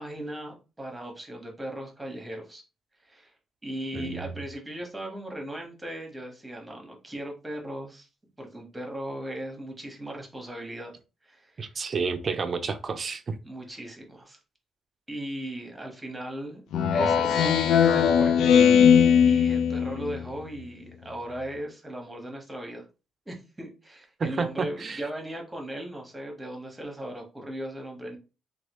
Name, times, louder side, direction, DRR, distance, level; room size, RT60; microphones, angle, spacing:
voice 1, 0.0-2.6 3.0-3.3 3.6-8.1 8.4-10.9 11.2-11.7 13.4-14.4 15.1-16.6 16.9-18.4 19.3-22.9 23.3-28.2, right 1 dB, 15° right, 1.1 m, -37 dB
voice 2, 3.9-4.3 11.6-13.3 24.2-25.0, right 5 dB, 45° right, 0.5 m, -30 dB
Speech synthesizer, 16.7-20.2, left 7 dB, 80° left, 0.4 m, -19 dB
3.2 x 2.4 x 3.0 m
cardioid pair, 90°, 0 cm